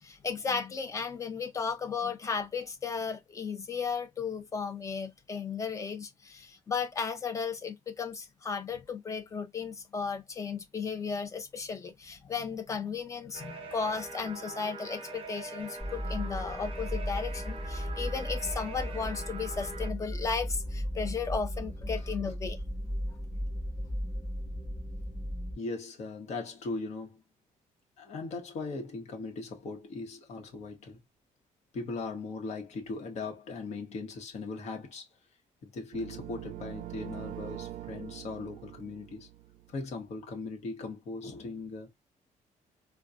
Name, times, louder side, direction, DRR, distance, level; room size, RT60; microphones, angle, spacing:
voice 1, 0.0-22.6, left 5 dB, 25° left, 0.6 m, -35 dB
sound 1, 13.3-19.9, right 3 dB, 40° right, 0.7 m, -43 dB
sound 2, 15.8-25.5, equal, 5° right, 2.2 m, -36 dB
voice 2, 25.6-27.2 28.0-31.0 31.7-35.1 35.6-39.3 39.7-41.9, left 3 dB, 55° left, 1.1 m, -39 dB
sound 3, 35.9-39.9, right 12 dB, 75° right, 0.4 m, -43 dB
3.9 x 2.2 x 2.3 m
cardioid pair, 170°, 14 cm